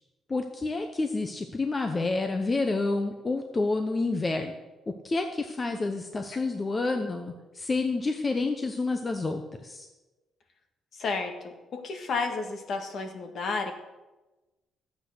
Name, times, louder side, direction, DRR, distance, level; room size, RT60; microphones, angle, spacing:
voice 1, 0.3-4.5 4.9-9.9, left 3 dB, 20° left, 5 dB, 0.8 m, -29 dB
voice 2, 11.0-13.7, left 4 dB, 50° left, 5 dB, 1.8 m, -32 dB
13.0 x 8.2 x 6.6 m, 1.1 s
cardioid pair, 150°, 0 cm